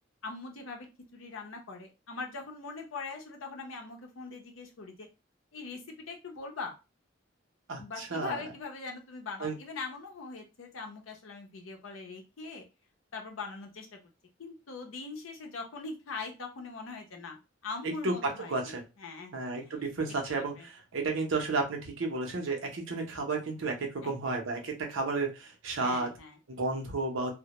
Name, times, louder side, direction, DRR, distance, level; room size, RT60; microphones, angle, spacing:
voice 1, 0.2-0.9 1.1-5.1 5.5-6.7 7.8-12.6 13.1-14.0 14.4-19.8 20.4-20.7 24.0-24.1 25.8-26.4, left 4 dB, 90° left, 3 dB, 0.6 m, -42 dB
voice 2, 7.7-8.4 9.4-9.5 18.0-18.1 18.5-18.8 19.3-26.1 26.5-27.3, right 3 dB, 75° right, 3 dB, 0.7 m, -32 dB
2.1 x 2.0 x 2.8 m, 0.28 s
head